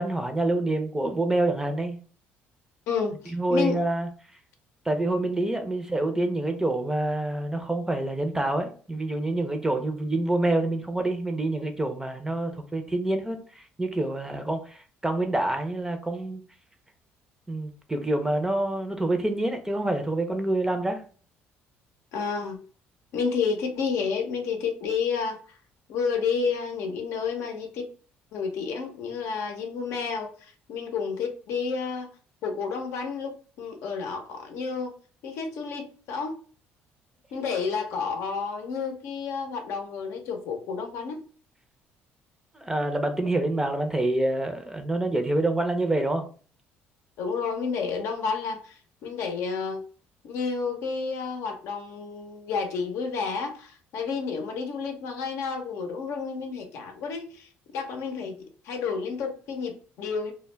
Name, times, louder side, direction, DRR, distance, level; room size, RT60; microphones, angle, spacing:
voice 1, 0.0-2.0 3.3-4.1 4.9-16.4 17.5-21.0 42.5-46.2, right 2 dB, 10° right, 0.5 m, -27 dB
voice 2, 2.9-3.8 22.1-22.6 23.1-25.6 25.9-27.9 28.3-32.1 32.4-34.9 35.2-36.4 37.3-41.2 47.2-49.8 50.2-58.4 58.6-60.3, left 5 dB, 75° left, 0.6 m, -30 dB
2.2 x 2.1 x 3.1 m
supercardioid pair, 85°, 5 cm